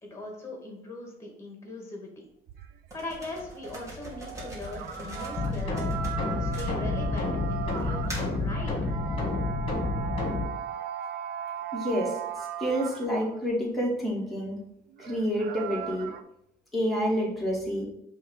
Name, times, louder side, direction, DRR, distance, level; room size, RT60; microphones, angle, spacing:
voice 1, 0.0-2.1 2.9-8.8, left 2 dB, 15° left, 0 dB, 2.3 m, -40 dB
sound 1, 2.5-13.4 14.9-16.2, right 8 dB, 70° right, 0.6 m, -38 dB
sound 2, 2.9-7.2 7.8-8.4, equal, 20° right, 2.4 m, -42 dB
sound 3, 5.4-10.4, left 3 dB, 35° left, 1.8 m, -29 dB
voice 2, 11.7-12.1 12.6-14.6 15.0-16.1 16.7-17.9, equal, ahead, -4 dB, 2.3 m, -28 dB
5.4 x 3.5 x 5.6 m, 0.74 s
cardioid pair, 110°, 17 cm